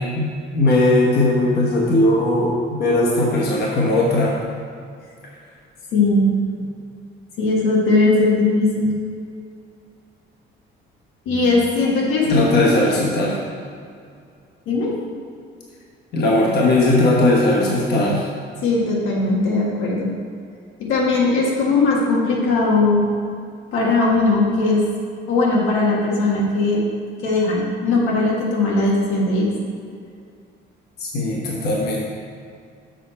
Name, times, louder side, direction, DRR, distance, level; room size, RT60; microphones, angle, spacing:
voice 1, 0.5-4.3 12.2-13.4 16.1-18.2 31.0-32.2, left 2 dB, 55° left, -3 dB, 1.3 m, -18 dB
voice 2, 5.9-6.3 7.4-9.0 11.2-13.0 14.7-14.9 18.6-20.1 20.8-23.0 23.7-24.8 25.3-26.8 27.2-29.5, left 3 dB, 90° left, -3 dB, 1.6 m, -19 dB
7.3 x 5.7 x 4.3 m, 2.3 s
cardioid pair, 170°, 20 cm